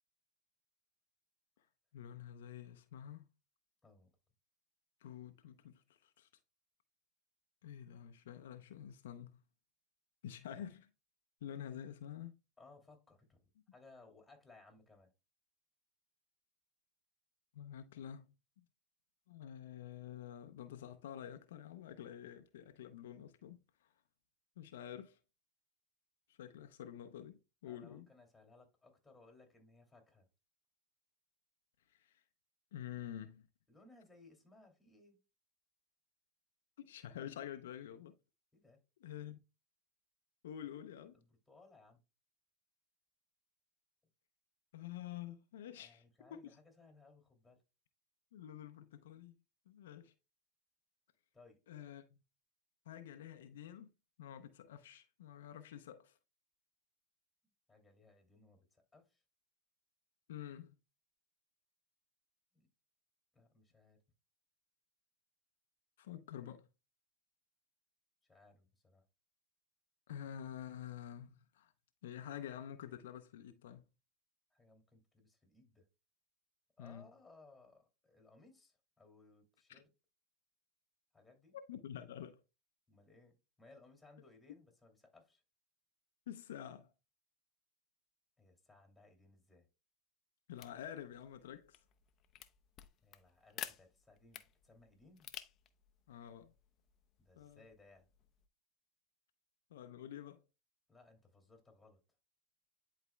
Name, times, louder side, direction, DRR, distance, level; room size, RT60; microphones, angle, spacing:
voice 1, 1.9-3.2 5.0-6.3 7.6-9.4 10.2-10.9 11.4-12.4 17.5-18.3 18.6-18.7 19.3-23.9 24.6-25.2 26.3-28.1 31.9-32.2 32.7-33.5 36.8-38.2 39.0-39.4 40.4-41.2 44.7-46.0 46.3-46.4 48.3-49.4 49.7-50.1 51.7-52.2 52.9-53.9 54.2-56.2 60.3-60.7 66.0-66.7 70.1-71.7 72.0-73.8 76.8-77.1 79.7-79.8 81.5-82.4 86.3-86.9 90.5-91.8 96.1-96.5 97.4-97.6 99.7-100.4, left 10 dB, 80° left, 0.6 m, -48 dB
voice 2, 12.6-15.1 27.7-30.3 33.7-35.2 38.5-38.8 41.1-42.0 45.8-47.6 51.3-51.6 57.7-59.2 62.5-62.7 63.3-64.0 68.3-69.0 74.5-75.9 76.8-79.9 81.1-81.6 82.9-85.4 88.4-89.7 93.0-95.3 97.2-98.1 100.9-102.0, left 3 dB, 10° left, 2.5 m, -63 dB
sound 1, 90.5-98.5, left 11 dB, 40° left, 0.6 m, -54 dB
11.0 x 4.1 x 2.2 m
hypercardioid pair, 105°, 0 cm